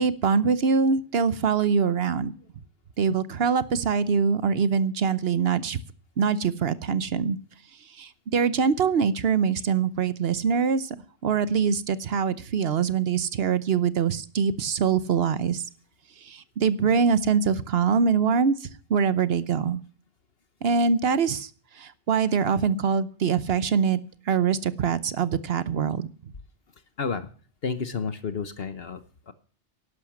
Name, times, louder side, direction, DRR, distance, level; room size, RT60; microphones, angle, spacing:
voice 1, 0.0-2.3 3.0-5.8 6.2-7.4 7.8-11.0 11.2-15.6 16.2-19.8 20.6-21.5 21.7-24.0 24.3-26.3, right 6 dB, 65° right, 15 dB, 1.0 m, -24 dB
voice 2, 27.0-27.3 27.6-29.3, left 5 dB, 60° left, 11 dB, 1.2 m, -31 dB
11.5 x 10.5 x 7.3 m, 0.41 s
omnidirectional pair, 1.2 m